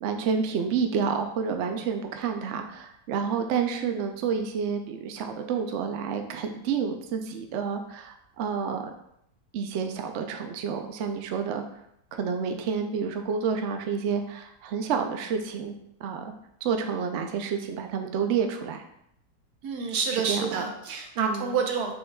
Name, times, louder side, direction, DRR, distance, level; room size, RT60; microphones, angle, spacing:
voice 1, 0.0-8.9 9.5-11.6 12.1-15.8 16.0-16.3 16.6-18.8 20.1-20.7 21.2-21.6, right 6 dB, 65° right, 5 dB, 0.7 m, -29 dB
voice 2, 19.6-21.9, right 5 dB, 90° right, 2 dB, 1.3 m, -28 dB
6.1 x 3.7 x 2.2 m, 0.75 s
omnidirectional pair, 1.6 m